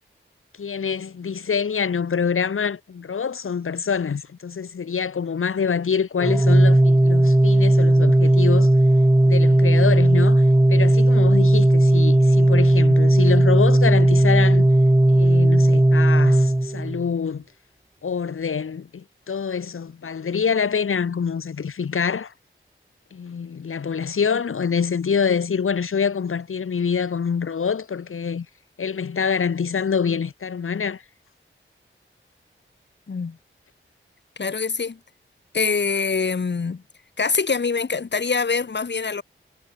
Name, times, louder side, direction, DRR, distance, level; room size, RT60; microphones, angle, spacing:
voice 1, 0.6-8.7 9.3-10.4 10.7-14.7 15.1-17.4 18.0-22.3 23.1-28.5 28.8-31.0, left 6 dB, 80° left, 2.4 m, -25 dB
Organ, 6.2-17.1, right 1 dB, 15° right, 2.8 m, -16 dB
voice 2, 34.4-35.0 35.5-36.8 37.2-39.2, left 5 dB, 55° left, 2.2 m, -24 dB
wide cardioid pair, 70°, 21 cm